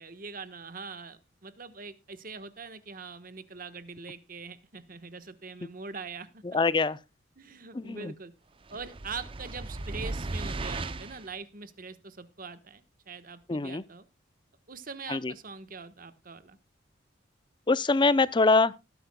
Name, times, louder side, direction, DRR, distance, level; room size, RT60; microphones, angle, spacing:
voice 1, 0.0-6.4 7.4-8.3 8.7-14.0 14.7-16.6, right 4 dB, 45° right, 1.3 m, -43 dB
voice 2, 6.5-7.0 7.7-8.1 13.5-13.8 15.1-15.3 17.7-18.7, left 3 dB, 25° left, 0.5 m, -24 dB
sound 1, 8.7-11.3, right 2 dB, 25° right, 0.5 m, -36 dB
19.0 x 9.6 x 2.3 m
head